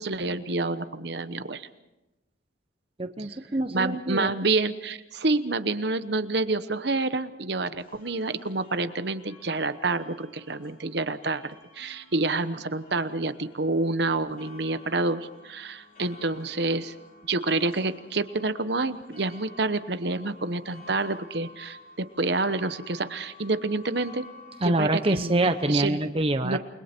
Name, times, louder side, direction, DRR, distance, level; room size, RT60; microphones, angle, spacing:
voice 1, 0.0-1.7 3.7-16.9 17.3-24.2 24.6-26.0 26.4-26.6, right 3 dB, 60° right, 11 dB, 1.0 m, -28 dB
voice 2, 3.0-4.3 24.6-26.6, right 2 dB, 30° right, 8 dB, 0.8 m, -25 dB
sound 1, 7.8-25.7, left 3 dB, 45° left, 3.5 m, -51 dB
29.5 x 21.5 x 4.5 m, 0.98 s
head